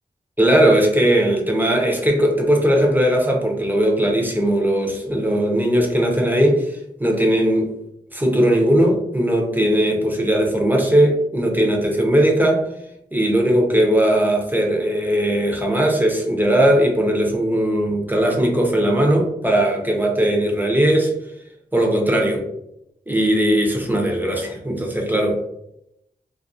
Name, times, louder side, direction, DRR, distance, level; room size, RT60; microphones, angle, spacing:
voice 1, 0.4-7.8 8.1-12.7 13.1-21.1 21.7-22.4 23.1-25.4, right 1 dB, 10° right, 0 dB, 0.6 m, -18 dB
2.3 x 2.3 x 2.6 m, 0.79 s
cardioid pair, 50°, 17 cm